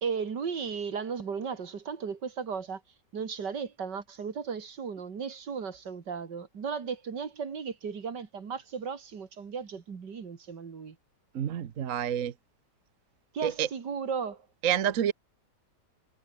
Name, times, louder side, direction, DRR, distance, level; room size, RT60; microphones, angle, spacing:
voice 1, 0.0-2.8 3.1-11.0 13.3-14.4, right 6 dB, 75° right, 2.7 m, -35 dB
voice 2, 11.3-12.3 13.4-13.7 14.6-15.1, right 10 dB, 55° right, 1.2 m, -28 dB
omnidirectional pair, 1.9 m